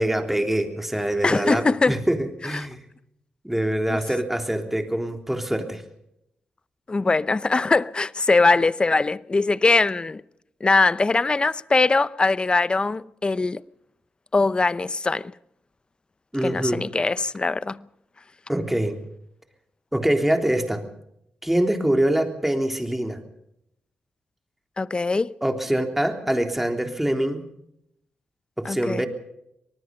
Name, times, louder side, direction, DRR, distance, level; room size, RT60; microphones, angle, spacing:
voice 1, 0.0-2.8 3.4-5.8 16.3-16.8 18.5-19.0 19.9-20.9 21.4-23.2 25.4-27.5 28.6-29.1, right 1 dB, 5° right, 3.5 m, -24 dB
voice 2, 1.2-1.9 3.9-4.0 6.9-10.2 10.6-13.6 14.3-15.3 16.4-17.8 24.8-25.3 28.6-29.0, left 3 dB, 30° left, 0.7 m, -21 dB
25.0 x 19.0 x 5.4 m
cardioid pair, 65°, 3 cm